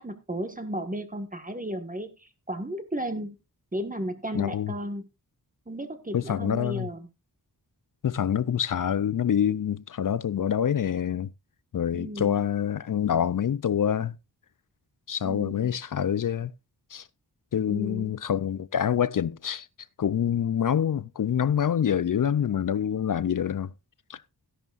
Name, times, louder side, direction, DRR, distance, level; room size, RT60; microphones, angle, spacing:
voice 1, 0.0-3.4 3.7-5.1 5.7-7.1 11.9-12.4 15.2-15.8 17.7-18.1, right 1 dB, 20° right, 1.5 m, -34 dB
voice 2, 4.3-4.7 6.1-6.9 8.0-11.3 11.7-14.2 15.1-16.5 16.9-17.1 17.5-19.7 20.0-23.7 24.1-24.2, left 9 dB, 55° left, 0.5 m, -26 dB
15.0 x 11.0 x 2.5 m
wide cardioid pair, 110°, 40 cm